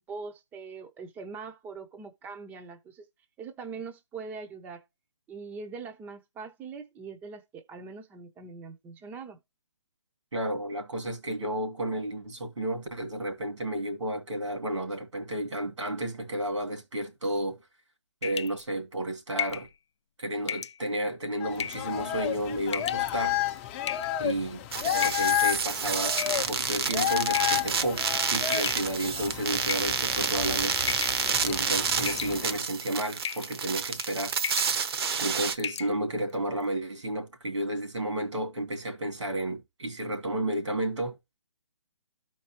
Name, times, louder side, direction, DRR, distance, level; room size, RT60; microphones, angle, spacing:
voice 1, 0.0-3.1 3.4-4.8 5.3-9.4, right 4 dB, 10° right, 0.6 m, -42 dB
voice 2, 10.3-17.6 18.2-19.7 20.2-23.4 24.2-30.9 31.4-34.4 35.2-41.2, right 1 dB, 85° right, 2.5 m, -32 dB
sound 1, 18.2-18.6 19.4-19.7 20.5-20.8 21.6-21.9 22.7-23.1 23.9-24.3 25.0-25.4 26.2-26.8 27.3-27.7 28.5-29.2 29.7-30.3 30.9-31.2 31.5-31.8 32.1-32.6 33.2-33.5 33.9-34.1 34.4-34.7 35.1-35.2 35.6-35.9, left 8 dB, 75° left, 0.4 m, -34 dB
sound 2, 21.4-32.6, left 13 dB, 25° left, 0.7 m, -32 dB
sound 3, 24.7-35.5, right 6 dB, 55° right, 0.9 m, -29 dB
13.0 x 4.6 x 2.9 m
hypercardioid pair, 150°, 15 cm